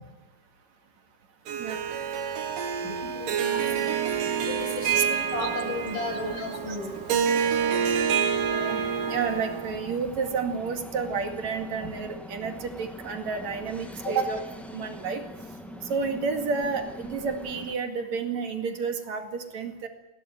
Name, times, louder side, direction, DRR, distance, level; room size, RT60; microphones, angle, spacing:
voice 1, 1.5-1.8 3.5-3.6 4.9-5.1 5.4-5.5 6.7-6.8 8.4-15.2 15.8-19.9, right 5 dB, 60° right, 5 dB, 3.4 m, -31 dB
Harp, 1.5-9.9, right 7 dB, 90° right, 3.3 m, -28 dB
voice 2, 2.8-3.8 4.5-7.2 14.0-14.1, left 2 dB, 80° left, 3 dB, 7.7 m, -35 dB
sound 1, 3.5-17.7, equal, ahead, 1.4 m, -43 dB
sound 2, 3.5-10.2, right 3 dB, 40° right, 7.6 m, -53 dB
21.0 x 17.5 x 9.2 m, 0.99 s
omnidirectional pair, 3.7 m